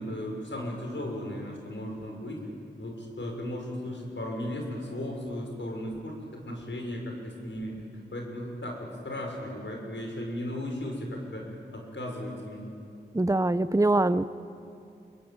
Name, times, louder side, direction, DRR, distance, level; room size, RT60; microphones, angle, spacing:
voice 1, 0.0-2.4 2.8-6.2 6.4-7.7 8.1-11.5 11.7-12.6, left 1 dB, 75° left, 1 dB, 6.4 m, -36 dB
voice 2, 13.1-14.2, right 2 dB, 15° right, 14 dB, 0.9 m, -23 dB
27.5 x 23.0 x 9.0 m, 2.6 s
cardioid pair, 40°, 20 cm